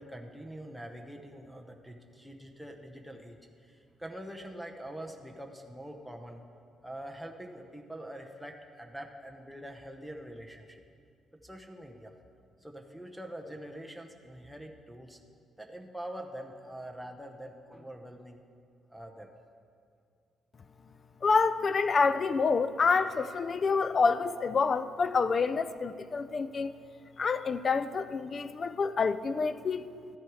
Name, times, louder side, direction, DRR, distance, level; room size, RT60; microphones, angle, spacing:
voice 1, 0.0-6.4 6.8-10.8 11.4-12.1 12.6-15.2 15.6-18.4 18.9-19.3, right 1 dB, ahead, 1 dB, 0.8 m, -44 dB
voice 2, 21.2-26.7 27.2-29.9, left 4 dB, 45° left, 14 dB, 0.4 m, -27 dB
13.0 x 7.6 x 4.8 m, 2.3 s
cardioid pair, 90°, 0 cm